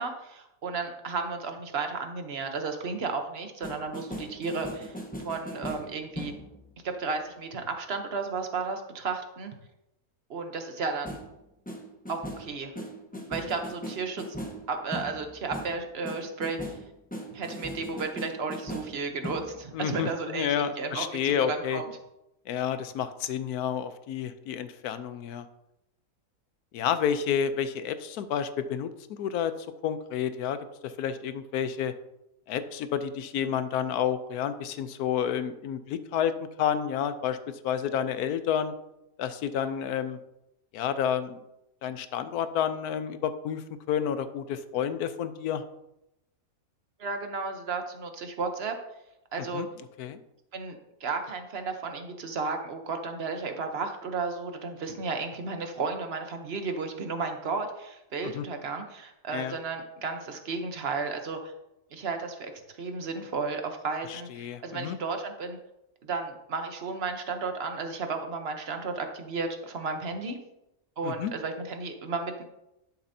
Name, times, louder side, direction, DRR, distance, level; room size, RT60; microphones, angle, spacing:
voice 1, 0.0-6.3 6.8-9.5 10.3-11.2 12.1-12.7 13.3-14.2 14.7-16.7 17.3-21.8 47.0-48.7 49.3-49.6 50.5-61.5 61.9-62.5 62.8-65.6 66.0-70.4 71.0-72.4, right 4 dB, 50° right, 6 dB, 1.0 m, -33 dB
sound 1, 3.6-6.8 11.0-11.3 11.7-19.6, equal, 5° left, 0.9 m, -39 dB
voice 2, 19.7-21.8 22.5-25.4 26.7-29.5 29.8-30.6 30.8-31.9 32.5-38.7 39.2-40.2 40.7-41.4 41.8-45.6 49.5-49.7 50.0-50.2 58.3-58.4 59.3-59.6 64.1-65.0 71.0-71.3, left 8 dB, 85° left, 11 dB, 1.1 m, -30 dB
11.5 x 6.9 x 2.8 m, 0.88 s
omnidirectional pair, 1.6 m